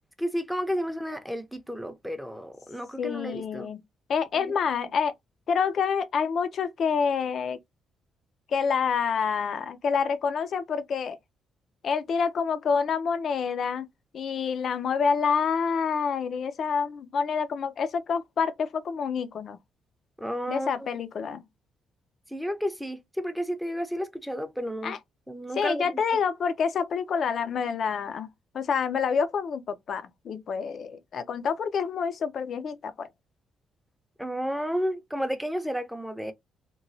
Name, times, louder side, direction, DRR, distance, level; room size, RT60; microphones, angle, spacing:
voice 1, 0.2-3.7 4.4-4.5 20.2-20.7 22.3-24.9 25.3-25.9 34.2-36.3, equal, ahead, 0.6 m, -32 dB
voice 2, 3.0-3.8 4.1-5.1 5.5-7.6 8.5-11.2 11.8-13.9 14.1-19.6 20.5-21.4 24.8-25.0 25.6-33.1, left 6 dB, 60° left, 0.4 m, -27 dB
3.0 x 2.2 x 2.6 m
cardioid pair, 90°, 0 cm